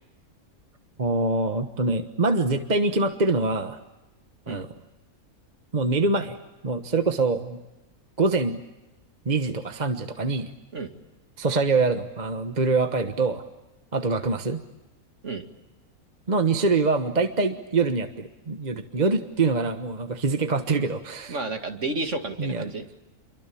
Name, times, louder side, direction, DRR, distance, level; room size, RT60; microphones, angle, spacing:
voice 1, 1.0-3.8 4.5-4.7 5.7-6.4 6.6-7.6 8.2-8.6 9.2-10.5 11.4-13.5 13.9-14.6 16.3-21.4 22.4-22.6, right 3 dB, 30° right, 7 dB, 1.3 m, -24 dB
voice 2, 21.3-22.9, right 2 dB, 50° right, 5 dB, 2.6 m, -31 dB
28.5 x 23.5 x 8.5 m, 0.99 s
omnidirectional pair, 1.6 m